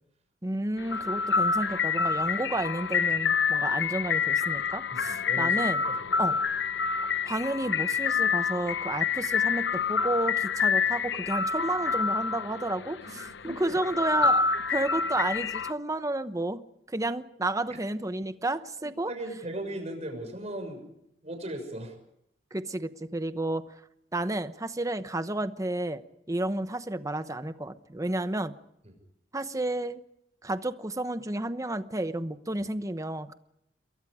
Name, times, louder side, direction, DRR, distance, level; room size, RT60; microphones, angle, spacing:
voice 1, 0.4-5.8 6.2-6.3 7.2-14.4 14.7-16.6 16.9-19.1 22.5-23.7 24.1-26.0 26.3-28.5 29.3-30.0 30.4-33.3, right 2 dB, 20° right, 11 dB, 1.0 m, -31 dB
sound 1, 0.8-15.7, left 5 dB, 75° left, 0.8 m, -27 dB
voice 2, 4.9-6.4 13.0-13.8 14.2-14.3 18.8-20.9 21.2-22.0 28.8-28.9, right 1 dB, 40° right, 5 dB, 6.3 m, -39 dB
28.0 x 22.0 x 5.0 m, 0.77 s
head